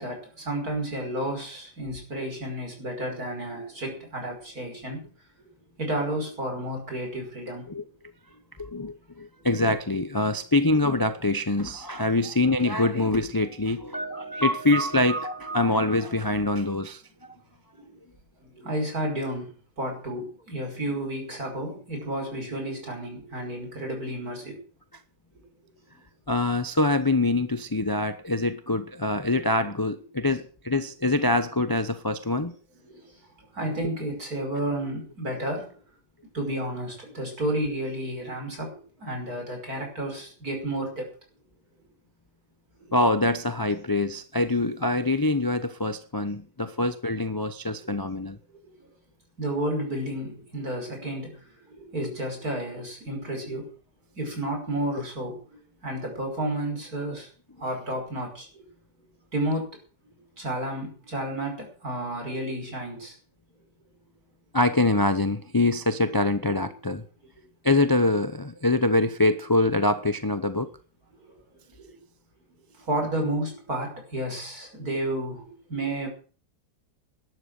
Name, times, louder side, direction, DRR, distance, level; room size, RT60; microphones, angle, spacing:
voice 1, 0.0-5.1 5.8-7.7 17.7-18.0 18.6-24.6 32.4-32.5 32.9-33.0 33.5-35.7 36.3-41.1 49.4-53.7 54.2-55.4 55.8-57.3 57.6-58.6 59.3-59.7 60.4-63.2 72.8-76.1, right 1 dB, 55° right, 6.0 m, -31 dB
voice 2, 8.6-17.3 26.3-32.5 42.9-48.4 64.5-67.0 67.6-70.7, left 2 dB, 25° left, 0.4 m, -24 dB
12.5 x 11.0 x 6.6 m
omnidirectional pair, 1.8 m